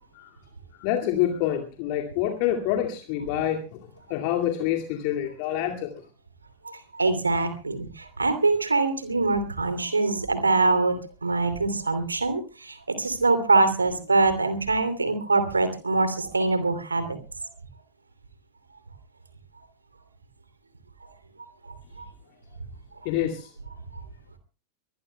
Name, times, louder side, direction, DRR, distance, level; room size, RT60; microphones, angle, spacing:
voice 1, 0.7-6.0 23.0-23.5, left 11 dB, 45° left, 3 dB, 2.2 m, -27 dB
voice 2, 6.6-17.2 21.0-21.1 21.7-22.1 23.9-24.0, right 3 dB, 80° right, 10 dB, 2.8 m, -24 dB
23.5 x 20.5 x 2.3 m, 0.36 s
figure-of-eight pair, 90°, 0 cm